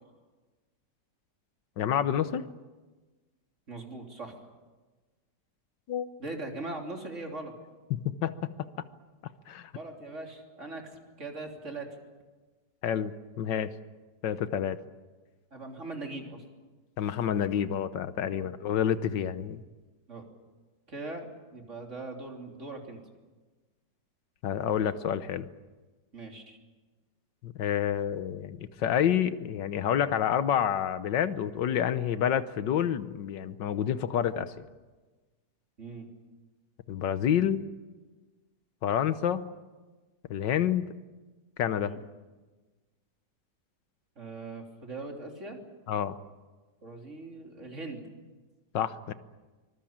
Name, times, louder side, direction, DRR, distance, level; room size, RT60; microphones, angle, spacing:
voice 1, 1.8-2.4 5.9-6.1 7.9-8.5 9.5-9.7 12.8-13.7 14.2-14.8 17.0-19.6 24.4-25.5 27.4-34.7 36.9-37.6 38.8-39.4 40.3-40.9 41.6-41.9 45.9-46.2 48.7-49.1, left 9 dB, 85° left, 13 dB, 1.7 m, -28 dB
voice 2, 3.7-4.4 6.2-7.5 9.7-11.9 15.5-16.4 18.3-18.5 20.1-20.2 20.9-23.0 26.1-26.6 35.8-36.1 41.8-42.0 44.2-45.6 46.8-48.0, right 2 dB, 40° right, 2 dB, 3.6 m, -40 dB
25.0 x 20.5 x 8.8 m, 1.3 s
omnidirectional pair, 1.9 m